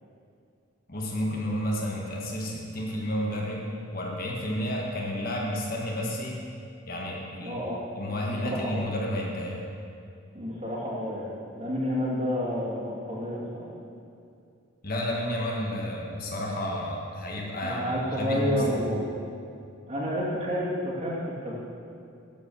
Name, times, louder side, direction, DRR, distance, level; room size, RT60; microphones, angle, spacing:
voice 1, 0.9-6.4 6.9-7.6 7.9-9.6 14.8-18.6, left 1 dB, 45° left, -2 dB, 1.5 m, -31 dB
voice 2, 7.4-7.8 8.3-8.8 10.3-11.3 11.5-13.7 17.6-19.0 19.9-21.6, equal, 35° right, -6 dB, 2.3 m, -30 dB
12.5 x 5.2 x 7.0 m, 2.5 s
head